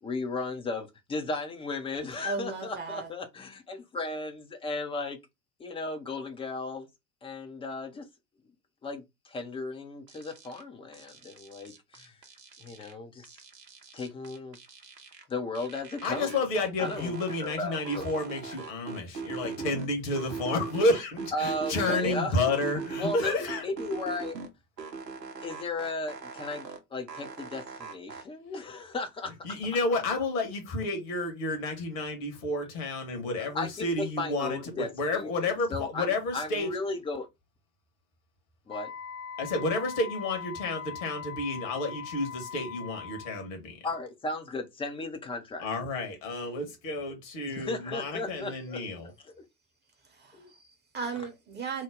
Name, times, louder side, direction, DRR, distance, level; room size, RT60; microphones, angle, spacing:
voice 1, 0.0-3.2 3.7-5.2 5.6-6.9 7.2-8.0 8.8-12.2 12.6-13.3 13.9-14.6 15.3-16.4 16.8-17.1 17.4-18.1 21.3-22.4 23.0-24.4 25.4-26.7 26.9-29.3 33.4-37.3 38.7-38.9 43.8-45.7 47.4-48.9 49.2-49.3 50.4-50.5, left 2 dB, 10° left, 0.4 m, -35 dB
voice 2, 2.2-3.1 50.1-51.8, right 5 dB, 20° right, 0.8 m, -36 dB
sound 1, 10.1-10.6 10.9-12.9 13.2-15.2 15.5-17.6 17.8-19.9 20.2-22.2 22.5-24.5 24.8-26.8 27.1-28.2, right 5 dB, 90° right, 0.6 m, -40 dB
voice 3, 16.0-23.6 29.4-36.7 39.4-43.8 45.6-49.1, left 2 dB, 55° left, 1.3 m, -30 dB
Wind instrument woodwind instrument, 38.7-43.5, left 6 dB, 80° left, 0.6 m, -41 dB
3.0 x 2.0 x 3.6 m
figure-of-eight pair, 75°, 47 cm